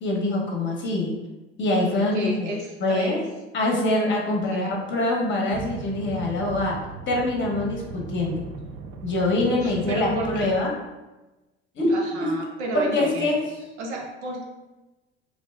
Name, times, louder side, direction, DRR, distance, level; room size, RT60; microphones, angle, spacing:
voice 1, 0.0-1.2 1.6-2.5 2.8-3.2 3.5-6.8 7.1-8.5 9.0-10.7 11.8-12.3 12.7-13.4, left 2 dB, 35° left, -1 dB, 0.9 m, -24 dB
voice 2, 2.1-3.2 4.5-4.7 9.6-10.5 11.9-13.4 13.8-14.5, right 1 dB, 75° right, 0 dB, 0.7 m, -32 dB
sound 1, 5.5-10.6, right 5 dB, 40° right, 0.4 m, -38 dB
2.6 x 2.1 x 3.3 m, 1.1 s
figure-of-eight pair, 65°, 34 cm